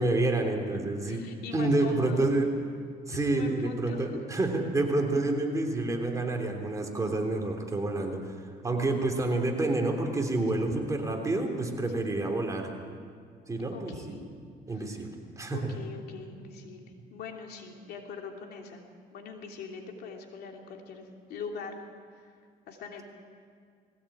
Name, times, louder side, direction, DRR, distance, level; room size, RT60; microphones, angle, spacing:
voice 1, 0.0-1.2 1.5-2.6 3.1-12.7 13.5-14.1 14.7-15.8, right 2 dB, 20° right, 1 dB, 3.3 m, -28 dB
voice 2, 1.0-2.3 3.1-4.2 10.5-10.7 11.9-12.0 13.7-14.3 14.7-15.0 15.5-18.8 19.1-21.8 22.2-22.3 22.7-23.0, left 5 dB, 70° left, 2 dB, 3.0 m, -42 dB
20.0 x 17.0 x 8.8 m, 2.2 s
cardioid pair, 110°, 17 cm